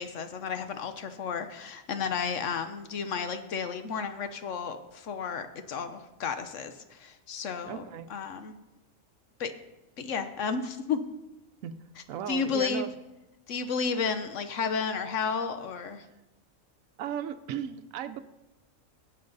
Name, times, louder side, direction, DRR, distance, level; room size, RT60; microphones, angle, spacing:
voice 1, 0.0-7.8 8.1-8.6 9.4-9.5 10.0-11.0 12.3-12.8 13.5-16.0, left 6 dB, 70° left, 9 dB, 1.1 m, -32 dB
voice 2, 7.6-8.1 11.6-11.8 12.1-12.9 17.0-18.2, right 9 dB, 85° right, 11 dB, 1.0 m, -36 dB
14.0 x 8.1 x 4.0 m, 1.0 s
omnidirectional pair, 1.4 m